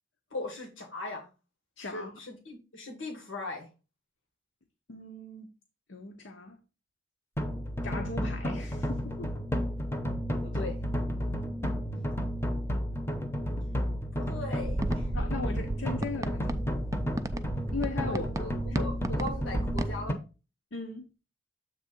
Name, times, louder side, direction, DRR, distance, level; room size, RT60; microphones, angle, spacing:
voice 1, 0.3-1.3 1.9-3.7 10.4-10.8 14.1-15.1 18.1-18.5 18.8-20.2, left 2 dB, 90° left, 1.8 m, -39 dB
voice 2, 1.8-2.1 4.9-5.5 5.9-6.6 7.8-9.3 9.6-9.7 15.1-16.7 17.7-18.2 18.7-18.9 20.7-21.1, left 3 dB, 70° left, 0.8 m, -38 dB
sound 1, 7.4-20.1, equal, 15° left, 0.8 m, -32 dB
sound 2, 14.6-19.9, right 1 dB, 15° right, 0.4 m, -35 dB
7.7 x 3.3 x 5.3 m
head